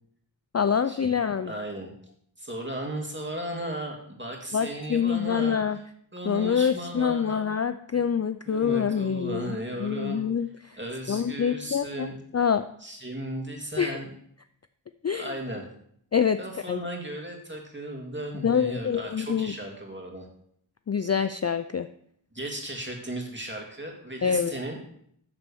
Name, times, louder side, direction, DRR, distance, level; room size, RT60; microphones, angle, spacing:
voice 1, 0.5-1.5 4.5-5.8 6.3-9.6 9.8-10.8 11.1-12.1 12.3-12.6 13.8-14.0 15.0-15.3 16.1-16.4 16.7-16.8 18.4-19.5 20.9-21.9 24.2-24.5, left 7 dB, 35° left, 11 dB, 0.4 m, -26 dB
voice 2, 1.5-1.9 2.4-5.8 6.1-7.5 7.9-8.1 8.5-10.3 10.8-12.1 12.8-14.1 15.1-15.7 16.4-20.3 22.3-24.8, right 1 dB, 25° right, 0 dB, 2.5 m, -36 dB
11.5 x 4.3 x 7.1 m, 0.67 s
wide cardioid pair, 45°, 48 cm